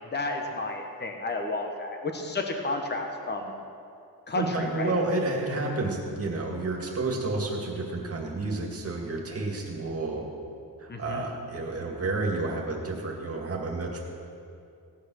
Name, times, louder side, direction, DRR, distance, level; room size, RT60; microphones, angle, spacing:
voice 1, 0.0-3.5 4.3-4.9 10.9-11.2, left 2 dB, 25° left, 3 dB, 1.2 m, -31 dB
voice 2, 4.3-10.2 10.8-14.0, right 2 dB, 40° right, -1 dB, 2.2 m, -30 dB
16.5 x 8.8 x 6.4 m, 2.5 s
wide cardioid pair, 175°, 38 cm